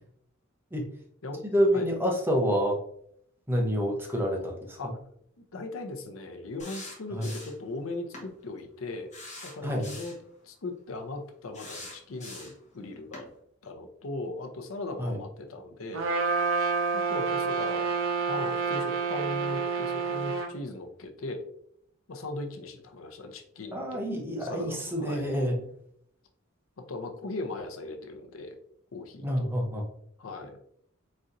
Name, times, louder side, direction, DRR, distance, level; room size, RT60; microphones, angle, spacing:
voice 1, 1.4-2.8 3.5-4.9 7.1-7.3 9.6-9.9 15.0-15.2 23.7-25.6 29.2-29.9, equal, 10° right, 1 dB, 0.7 m, -28 dB
voice 2, 5.5-9.1 9.4-10.2 10.4-13.3 13.6-16.1 16.9-17.9 18.3-21.4 22.1-24.1 24.5-25.3 26.9-28.6 28.9-29.5 30.2-30.6, left 2 dB, 80° left, 6 dB, 0.6 m, -38 dB
sound 1, 6.6-7.7 8.1-8.3 9.1-10.2 11.5-12.7 13.1-13.3, left 2 dB, 35° left, 1.3 m, -43 dB
Trumpet, 15.9-20.5, right 5 dB, 75° right, 0.7 m, -28 dB
4.2 x 3.8 x 2.6 m, 0.68 s
head